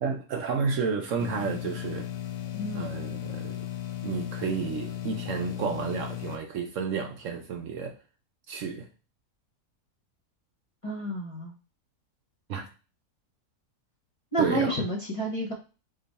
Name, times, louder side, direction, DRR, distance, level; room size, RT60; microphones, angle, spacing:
voice 1, 0.0-2.1 2.7-3.6 4.0-7.9 8.5-8.9 12.5-12.7 14.4-14.8, right 5 dB, 65° right, 0.9 m, -31 dB
sound 1, 1.2-6.4, left 12 dB, 70° left, 1.0 m, -36 dB
voice 2, 2.5-2.9 10.8-11.5 14.3-15.5, right 1 dB, 25° left, 0.8 m, -30 dB
5.2 x 2.4 x 4.0 m
omnidirectional pair, 1.6 m